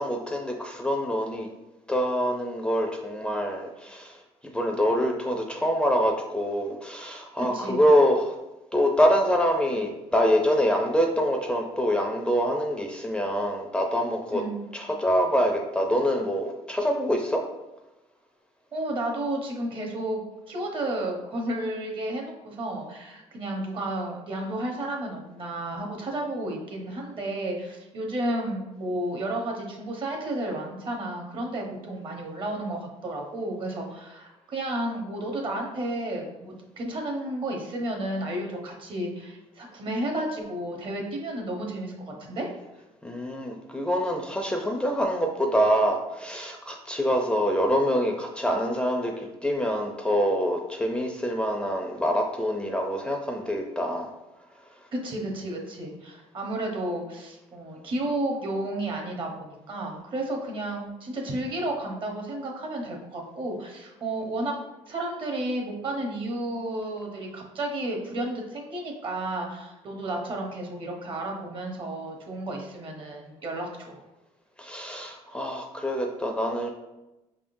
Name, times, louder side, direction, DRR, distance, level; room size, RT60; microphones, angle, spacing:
voice 1, 0.0-1.5 1.9-8.3 8.7-14.4 14.7-17.4 43.0-54.1 74.6-76.7, equal, 10° left, 2 dB, 0.4 m, -25 dB
voice 2, 7.5-7.8 14.3-14.6 18.7-20.2 20.5-42.5 54.9-64.6 64.9-74.0, right 1 dB, 45° right, 1 dB, 1.0 m, -32 dB
5.1 x 3.6 x 2.6 m, 0.99 s
cardioid pair, 115°, 12 cm